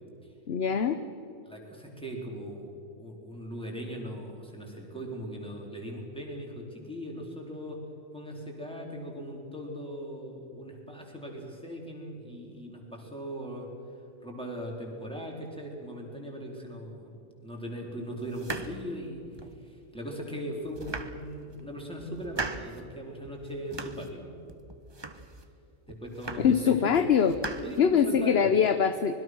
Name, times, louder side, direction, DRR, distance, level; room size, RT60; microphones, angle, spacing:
voice 1, 0.5-1.0 26.4-27.4 27.8-29.1, left 7 dB, 55° left, 10 dB, 1.0 m, -23 dB
voice 2, 1.4-2.7 3.0-7.8 8.1-13.7 14.2-17.1 17.4-19.2 19.6-24.2 25.9-26.9 27.6-28.5, equal, 5° left, -1 dB, 4.2 m, -39 dB
sound 1, 18.3-19.6 20.1-20.2 20.6-21.6 22.0-22.8 23.2-24.2 24.5-25.5 25.9-26.7 26.9-28.3, right 3 dB, 20° right, 1.0 m, -40 dB
25.0 x 21.5 x 6.3 m, 2.8 s
omnidirectional pair, 1.4 m